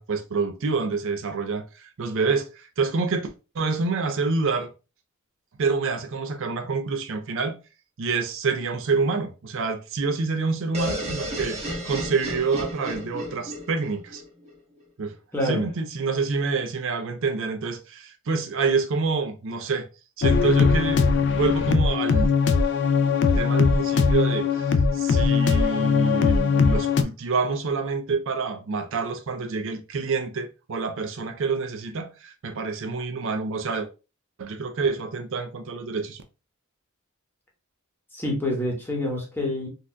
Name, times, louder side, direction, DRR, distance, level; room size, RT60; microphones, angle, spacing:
voice 1, 0.0-4.7 5.6-7.6 8.0-14.2 15.0-15.2 15.5-19.9 20.2-21.1 21.3-22.3 23.4-33.9 34.4-36.2, right 4 dB, 65° right, 0.5 m, -27 dB
sound 1, 10.7-14.5, equal, 30° right, 1.2 m, -33 dB
voice 2, 15.3-15.7 38.1-39.7, left 1 dB, 10° left, 1.0 m, -27 dB
sound 2, 20.2-27.0, left 5 dB, 55° left, 0.3 m, -20 dB
3.9 x 2.5 x 2.2 m
head